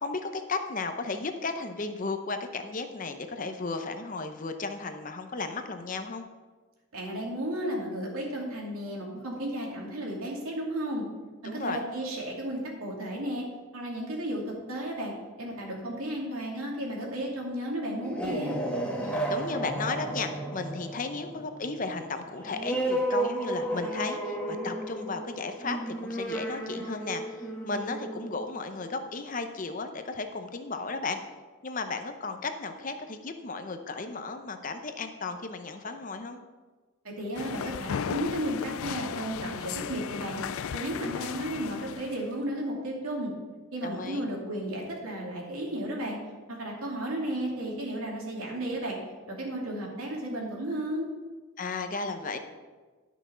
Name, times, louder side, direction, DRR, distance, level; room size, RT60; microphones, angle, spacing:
voice 1, 0.0-6.2 11.4-11.8 19.0-31.2 31.6-36.4 43.8-44.3 51.6-52.4, left 3 dB, 40° left, 7 dB, 0.7 m, -34 dB
voice 2, 6.9-11.0 11.4-13.4 13.7-18.5 37.0-40.4 40.7-43.3 43.7-46.2 46.5-49.0 49.3-51.1, right 1 dB, 80° right, -1 dB, 2.6 m, -33 dB
sound 1, 17.9-29.1, right 1 dB, 5° left, 1.3 m, -33 dB
sound 2, 37.4-42.3, left 8 dB, 75° left, 0.4 m, -36 dB
11.5 x 6.1 x 5.6 m, 1.4 s
head